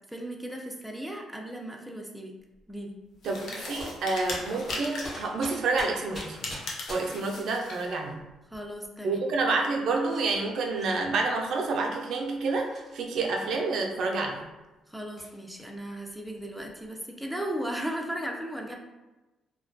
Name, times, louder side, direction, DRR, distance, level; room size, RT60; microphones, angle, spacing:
voice 1, 0.1-2.3 2.7-3.0 8.5-9.2 14.9-18.8, right 1 dB, ahead, 1 dB, 0.3 m, -36 dB
sound 1, 2.6-2.8 3.8-7.3 8.1-8.9 9.3-9.4 9.9-11.2 12.1-13.2 13.9-14.0 14.4-14.5 15.2-15.7 16.0-16.9, left 1 dB, 40° left, 0.9 m, -44 dB
sound 2, 3.2-5.3 6.1-7.9, left 2 dB, 75° left, 0.5 m, -38 dB
voice 2, 3.2-6.4 6.9-8.2 9.0-14.4, right 3 dB, 70° right, 1 dB, 0.4 m, -28 dB
2.3 x 2.1 x 2.5 m, 1.1 s
cardioid pair, 90°, 0 cm